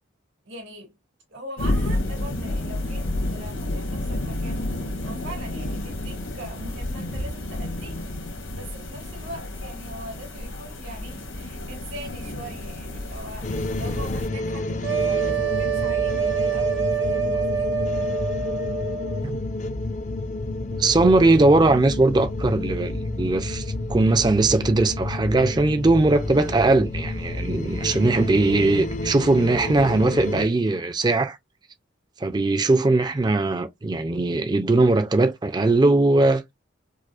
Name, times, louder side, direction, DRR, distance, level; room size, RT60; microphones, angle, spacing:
voice 1, 0.4-0.9 1.3-4.7 5.0-17.7, right 1 dB, 75° right, 2.2 m, -41 dB
sound 1, 1.6-14.3, left 1 dB, 85° left, 1.4 m, -30 dB
sound 2, 13.4-30.5, left 2 dB, 40° left, 0.4 m, -30 dB
sound 3, 14.8-19.2, right 6 dB, 60° right, 1.0 m, -25 dB
voice 2, 20.8-23.6 23.9-31.4 32.2-36.4, right 2 dB, 20° right, 0.4 m, -20 dB
4.8 x 2.0 x 2.4 m
head